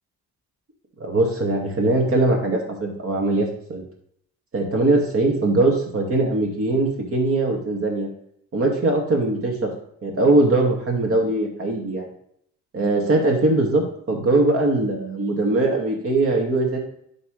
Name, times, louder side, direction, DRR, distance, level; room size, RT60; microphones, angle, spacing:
voice 1, 1.0-3.8 4.5-8.1 8.5-9.7 10.0-12.1 12.7-16.8, right 2 dB, 50° right, 1 dB, 2.2 m, -21 dB
11.0 x 4.1 x 3.3 m, 0.70 s
cardioid pair, 90°, 30 cm